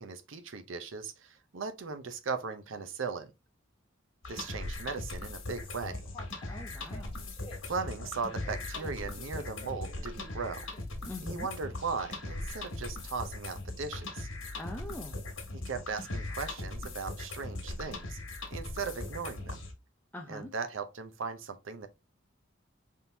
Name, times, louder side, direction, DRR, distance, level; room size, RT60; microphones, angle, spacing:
voice 1, 0.0-3.3 4.3-6.0 7.6-10.7 11.2-14.3 15.5-18.2 18.5-19.6 20.3-21.9, right 4 dB, 75° right, 0.7 m, -38 dB
sound 1, 4.2-19.7, left 2 dB, 90° left, 1.6 m, -40 dB
sound 2, 5.6-11.2, left 2 dB, 25° left, 0.8 m, -52 dB
voice 2, 6.5-7.1 11.1-11.5 14.6-15.2 20.1-20.5, left 1 dB, 10° left, 0.4 m, -43 dB
4.2 x 3.6 x 2.7 m
head